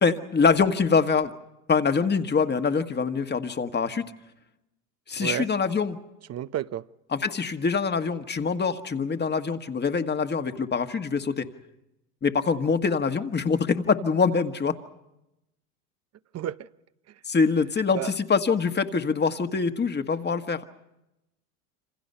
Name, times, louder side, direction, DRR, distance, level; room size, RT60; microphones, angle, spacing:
voice 1, 0.0-1.3 1.7-4.1 5.1-6.0 7.1-11.5 12.2-14.7 17.3-20.7, left 5 dB, 20° left, 1.7 m, -24 dB
voice 2, 5.2-5.5 6.3-6.8 16.3-16.7 17.9-18.1, right 11 dB, 35° right, 0.8 m, -31 dB
27.5 x 26.5 x 5.7 m
hypercardioid pair, 90°, 46 cm